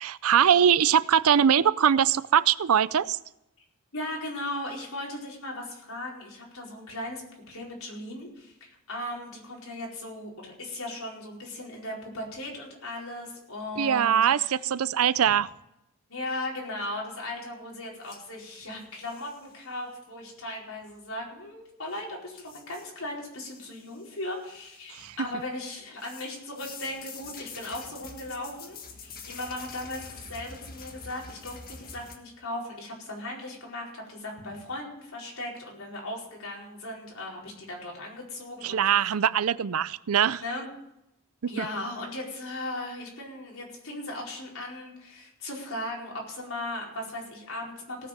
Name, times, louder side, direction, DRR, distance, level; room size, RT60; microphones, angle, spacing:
voice 1, 0.0-3.2 13.8-15.5 24.9-25.3 38.6-40.4 41.4-41.7, right 8 dB, 85° right, 18 dB, 0.5 m, -22 dB
voice 2, 3.9-7.2 7.5-14.5 16.1-38.8 40.4-40.7 41.5-48.1, left 1 dB, 75° left, -2 dB, 4.6 m, -37 dB
sound 1, 18.0-19.5 21.9-22.0 22.4-23.0 23.3-24.1 24.5-25.3 26.0-32.2, left 4 dB, 45° left, 1.7 m, -46 dB
18.5 x 6.7 x 6.7 m, 0.85 s
head